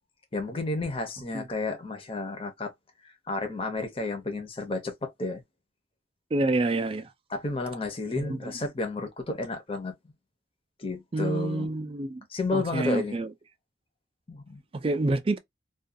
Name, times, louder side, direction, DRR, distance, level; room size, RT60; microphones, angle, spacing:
voice 1, 0.3-2.7 3.3-5.4 7.3-9.9 10.8-11.7 12.3-13.2 14.3-14.6, left 3 dB, 30° left, 0.6 m, -31 dB
voice 2, 6.3-7.1 8.2-8.4 11.1-12.2 12.5-13.3 14.7-15.4, right 2 dB, 30° right, 0.4 m, -27 dB
2.4 x 2.2 x 2.5 m
head